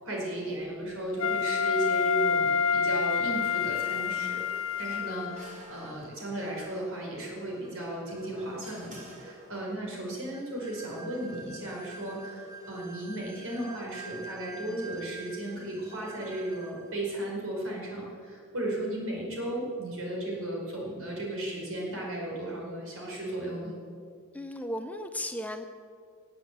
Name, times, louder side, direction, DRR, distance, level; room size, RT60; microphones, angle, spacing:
voice 1, 0.0-23.7, right 1 dB, 65° right, -2 dB, 4.8 m, -35 dB
Wind instrument woodwind instrument, 1.2-5.5, left 6 dB, 65° left, 0.8 m, -28 dB
sound 1, 4.8-6.5 7.9-9.9, right 1 dB, 35° right, 4.1 m, -51 dB
sound 2, 5.0-17.0, right 3 dB, 15° right, 1.7 m, -48 dB
voice 2, 13.6-13.9 24.3-25.7, left 1 dB, 5° left, 7 dB, 0.6 m, -36 dB
18.5 x 7.8 x 8.1 m, 2.2 s
head